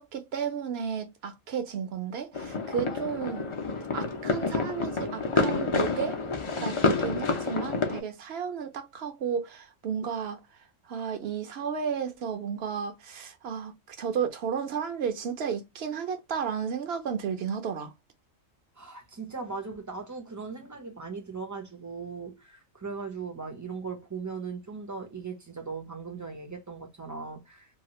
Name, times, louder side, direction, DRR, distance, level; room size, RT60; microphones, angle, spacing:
voice 1, 0.0-3.5 3.9-6.2 6.6-10.4 10.9-17.9, right 7 dB, 60° right, 0.8 m, -33 dB
sound 1, 2.3-8.0, left 4 dB, 55° left, 0.3 m, -28 dB
voice 2, 18.8-27.7, right 4 dB, 25° right, 0.4 m, -38 dB
2.8 x 2.4 x 2.9 m
omnidirectional pair, 1.4 m